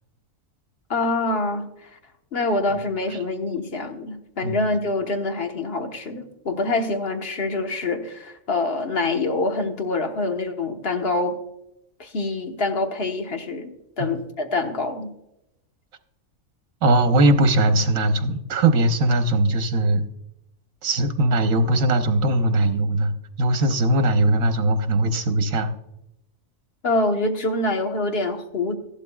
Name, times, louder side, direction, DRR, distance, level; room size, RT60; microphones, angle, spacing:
voice 1, 0.9-1.9 2.3-11.4 12.0-15.1 26.8-28.8, left 2 dB, 50° left, 4 dB, 1.3 m, -25 dB
voice 2, 16.8-20.0 20.8-25.7, right 1 dB, 85° right, 7 dB, 1.4 m, -20 dB
15.0 x 12.0 x 2.3 m, 0.87 s
omnidirectional pair, 1.4 m